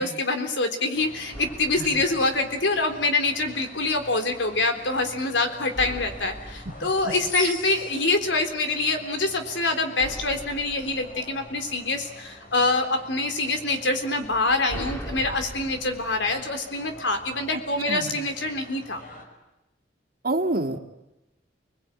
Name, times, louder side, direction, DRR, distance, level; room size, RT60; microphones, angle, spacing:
voice 1, 0.0-19.0, left 2 dB, 80° left, 7 dB, 3.7 m, -25 dB
sound 1, 0.9-19.2, left 2 dB, 50° left, 5.4 m, -44 dB
sound 2, 1.3-3.2 5.7-8.2 10.0-12.3 14.2-17.3, equal, 15° left, 2.8 m, -41 dB
voice 2, 17.9-18.2 20.2-20.8, right 2 dB, 55° right, 5 dB, 2.4 m, -27 dB
29.5 x 21.5 x 9.0 m, 0.98 s
head